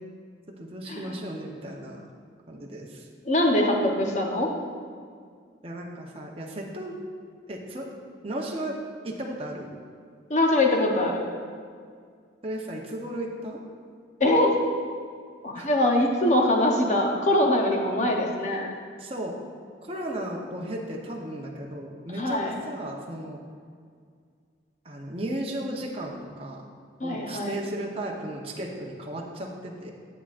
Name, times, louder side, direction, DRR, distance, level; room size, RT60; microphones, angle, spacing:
voice 1, 0.6-2.0 2.5-3.1 5.6-7.0 7.5-7.9 8.2-8.8 9.0-9.8 12.4-13.6 15.5-15.7 19.0-19.4 19.9-23.4 24.8-26.6 27.0-29.9, right 1 dB, 30° right, -1 dB, 0.8 m, -35 dB
voice 2, 3.3-4.5 10.3-11.2 14.2-14.5 15.4-18.7 22.2-22.5 27.0-27.6, left 1 dB, 40° left, 1 dB, 0.9 m, -23 dB
10.0 x 8.3 x 2.5 m, 2.1 s
head